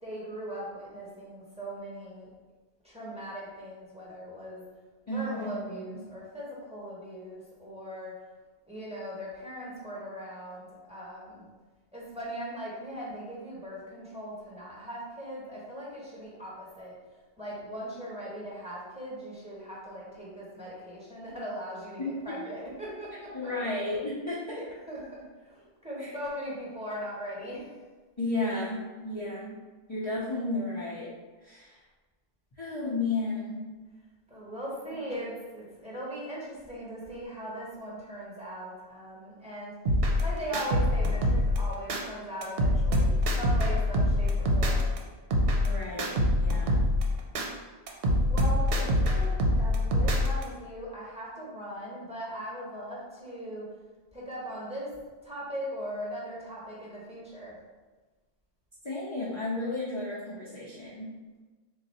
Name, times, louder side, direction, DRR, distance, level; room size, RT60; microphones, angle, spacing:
voice 1, 0.0-2.3 2.8-4.6 5.1-8.2 8.7-11.4 11.9-17.0 17.4-23.5 24.5-27.8 34.3-39.7 40.2-44.9 48.3-53.7 54.1-57.6, equal, 5° right, -7 dB, 1.0 m, -39 dB
voice 2, 5.1-6.0 22.0-22.4 23.3-24.7 26.0-26.2 28.2-29.6 29.9-31.1 31.4-31.8 32.6-33.6 45.6-46.8 58.8-61.1, left 2 dB, 35° left, -9 dB, 0.7 m, -33 dB
sound 1, 39.9-42.0 42.4-45.0 45.3-47.5 47.9-50.4, left 1 dB, 70° right, 0.8 m, -25 dB
3.9 x 2.3 x 4.1 m, 1.3 s
omnidirectional pair, 1.1 m